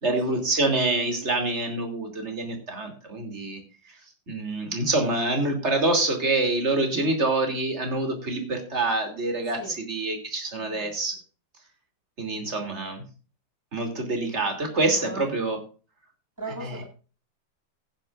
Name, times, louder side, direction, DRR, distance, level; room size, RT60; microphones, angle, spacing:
voice 1, 0.0-3.6 4.3-11.2 12.2-13.0 13.7-15.6 16.6-16.8, right 2 dB, 35° right, 4 dB, 3.3 m, -26 dB
voice 2, 10.6-10.9 12.3-12.6 15.0-15.3 16.4-16.8, right 1 dB, 10° right, -3 dB, 7.9 m, -38 dB
16.0 x 10.5 x 2.5 m, 0.36 s
omnidirectional pair, 2.0 m